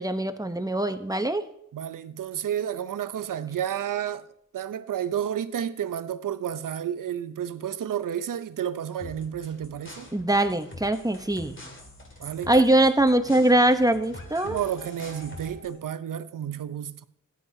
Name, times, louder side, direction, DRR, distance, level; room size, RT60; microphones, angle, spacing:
voice 1, 0.0-1.4 10.1-11.5 12.5-14.6, right 1 dB, 10° right, 0.9 m, -22 dB
voice 2, 1.7-4.2 4.5-10.1 12.2-12.5 14.4-17.0, right 9 dB, 80° right, 0.7 m, -31 dB
sound 1, 9.0-15.8, left 1 dB, 40° left, 2.3 m, -45 dB
14.5 x 9.6 x 2.8 m
wide cardioid pair, 80°, 32 cm